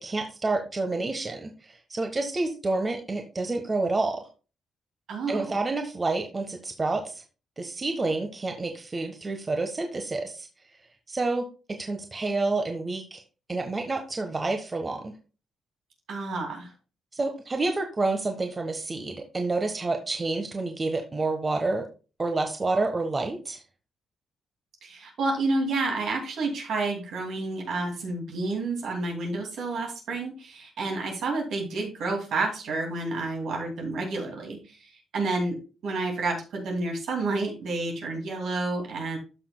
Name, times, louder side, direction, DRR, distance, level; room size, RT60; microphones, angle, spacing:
voice 1, 0.0-1.5 1.9-4.3 5.3-7.2 7.6-10.5 11.1-13.2 13.5-15.1 17.1-21.9 22.2-23.6, right 3 dB, 30° right, 4 dB, 1.2 m, -29 dB
voice 2, 5.1-5.6 16.1-16.7 24.8-39.2, right 3 dB, 75° right, 1 dB, 2.5 m, -30 dB
12.5 x 6.1 x 2.2 m, 0.34 s
cardioid pair, 80°, 0 cm